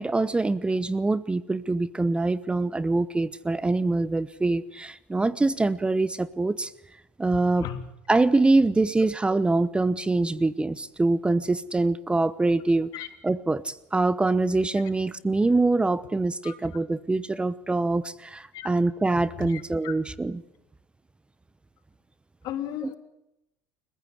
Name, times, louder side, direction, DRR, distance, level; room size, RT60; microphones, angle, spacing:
voice 1, 0.0-6.7 7.2-7.7 8.1-20.4 22.8-22.9, right 2 dB, 15° right, 0.9 m, -24 dB
voice 2, 19.4-19.9 22.4-22.9, left 11 dB, 65° left, 3.2 m, -35 dB
29.5 x 15.0 x 8.5 m
supercardioid pair, 85°, 7 cm